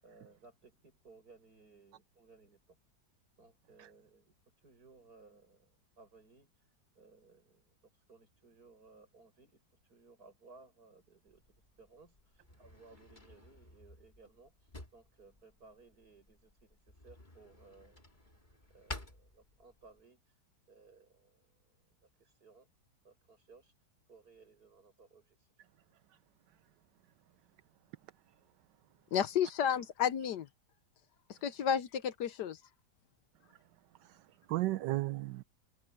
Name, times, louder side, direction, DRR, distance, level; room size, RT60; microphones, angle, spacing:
voice 1, 0.0-2.8 3.4-6.5 6.9-7.8 8.1-11.4 11.8-18.1 18.7-20.4 20.7-22.7 23.0-23.7 24.1-25.4, right 4 dB, 55° right, 8.0 m, -61 dB
Drawer open or close, 11.3-20.0, left 1 dB, 25° left, 3.2 m, -52 dB
voice 2, 29.1-30.5 31.4-32.6, left 8 dB, 70° left, 1.4 m, -31 dB
voice 3, 34.0-35.4, right 17 dB, 75° right, 1.3 m, -35 dB
omnidirectional pair, 2.0 m